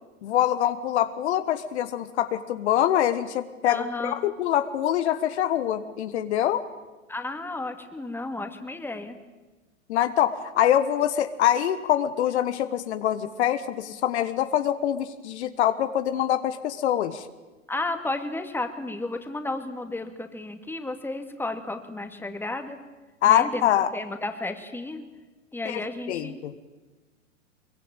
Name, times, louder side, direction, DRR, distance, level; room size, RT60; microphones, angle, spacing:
voice 1, 0.2-6.6 9.9-17.3 23.2-23.9 25.6-25.8 26.1-26.5, left 11 dB, 60° left, 11 dB, 1.4 m, -24 dB
voice 2, 3.6-4.1 7.1-9.2 17.7-22.8 23.3-25.0 25.5-26.4, left 2 dB, 5° left, 7 dB, 2.3 m, -33 dB
23.5 x 22.5 x 9.0 m, 1.2 s
figure-of-eight pair, 100°, 38 cm